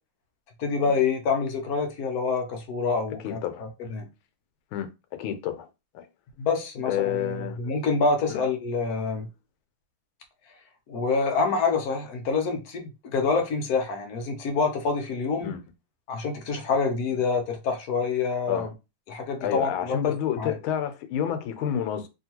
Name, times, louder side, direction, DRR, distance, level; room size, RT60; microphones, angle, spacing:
voice 1, 0.6-4.1 6.4-9.3 10.9-15.5 16.1-18.7 19.1-20.0 20.4-20.5, left 4 dB, 65° left, 1.0 m, -27 dB
voice 2, 3.2-3.7 4.7-5.7 5.9-6.1 6.8-7.6 8.3-8.4 15.4-15.6 18.5-18.7 19.4-22.1, left 10 dB, 80° left, 1.4 m, -29 dB
3.0 x 2.8 x 2.8 m
omnidirectional pair, 2.2 m